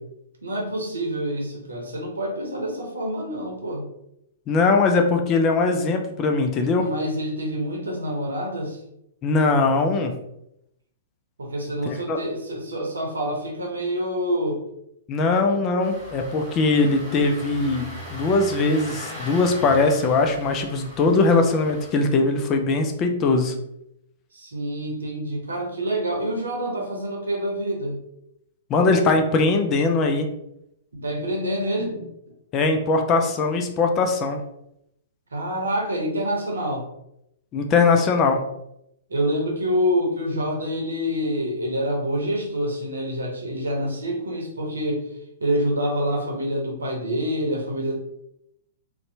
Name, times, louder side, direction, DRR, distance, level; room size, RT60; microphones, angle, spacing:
voice 1, 0.4-3.9 6.7-8.8 11.4-14.6 24.3-28.0 30.9-32.1 35.3-36.8 39.1-45.0 45.4-48.0, equal, 80° right, 0 dB, 0.7 m, -27 dB
voice 2, 4.5-6.9 9.2-10.1 11.9-12.2 15.1-23.5 28.7-30.3 32.5-34.4 37.5-38.4, left 3 dB, 30° left, 4 dB, 0.4 m, -21 dB
Engine starting, 15.8-21.9, equal, ahead, 0.9 m, -39 dB
2.6 x 2.2 x 2.7 m, 0.80 s
figure-of-eight pair, 110°, 0 cm